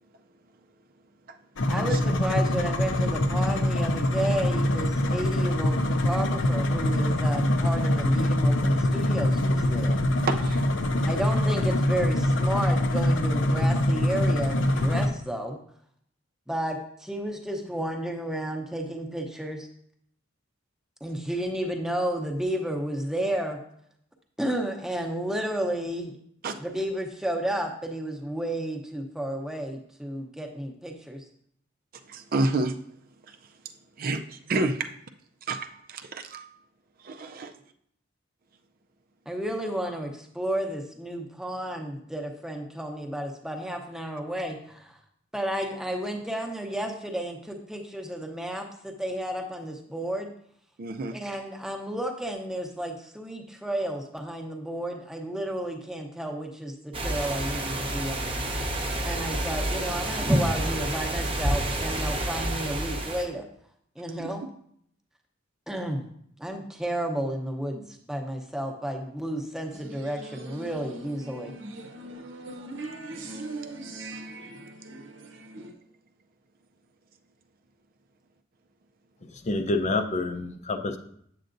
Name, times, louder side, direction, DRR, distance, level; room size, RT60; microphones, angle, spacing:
sound 1, 1.6-15.1, left 1 dB, 70° left, 0.7 m, -24 dB
voice 1, 1.7-10.0 11.0-15.6 16.5-16.8 17.1-19.7 21.0-23.6 24.4-26.1 26.6-31.2 39.3-45.0 45.3-50.3 51.1-58.3 59.0-63.4 64.0-64.4 65.7-66.1 66.4-71.5, right 1 dB, 5° right, 2 dB, 0.8 m, -32 dB
voice 2, 10.3-10.7 26.4-26.6 32.1-32.7 33.3-33.4 34.0-34.9 35.5-36.5 37.0-37.5 50.8-51.2, right 2 dB, 50° right, 6 dB, 0.4 m, -29 dB
sound 2, 56.9-63.2, right 1 dB, 30° right, 0.9 m, -28 dB
sound 3, 69.7-75.7, right 2 dB, 70° right, 0.8 m, -40 dB
voice 3, 79.4-81.0, left 2 dB, 35° left, 6 dB, 0.6 m, -27 dB
7.9 x 7.7 x 2.6 m, 0.67 s
head